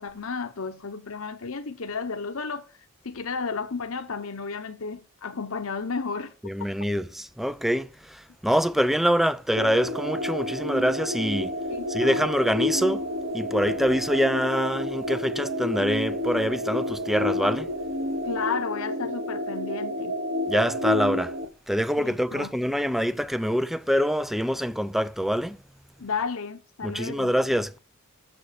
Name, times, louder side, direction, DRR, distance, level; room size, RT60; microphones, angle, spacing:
voice 1, 0.0-2.7 3.0-6.3 11.7-12.3 18.2-20.2 22.0-22.5 26.0-27.3, left 5 dB, 70° left, 0.9 m, -33 dB
voice 2, 6.4-11.5 11.9-13.1 13.3-17.7 20.5-21.3 21.7-25.6 26.8-27.8, equal, ahead, 0.4 m, -25 dB
sound 1, 9.6-21.4, left 1 dB, 45° right, 1.5 m, -29 dB
7.6 x 7.1 x 6.5 m
head